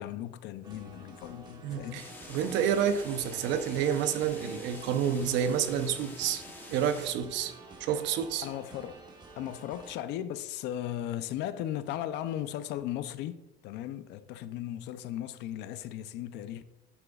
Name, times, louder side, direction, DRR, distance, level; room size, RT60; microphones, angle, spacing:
voice 1, 0.0-2.1 8.4-9.0 9.4-16.6, left 11 dB, 65° left, 0.5 m, -37 dB
sound 1, 0.6-9.9, right 3 dB, 20° right, 1.1 m, -50 dB
voice 2, 1.6-6.4 6.7-7.5 7.8-8.5, right 8 dB, 70° right, 0.8 m, -29 dB
sound 2, 2.0-7.1, left 2 dB, 10° left, 0.9 m, -47 dB
10.0 x 9.0 x 2.4 m
cardioid pair, 160°, 19 cm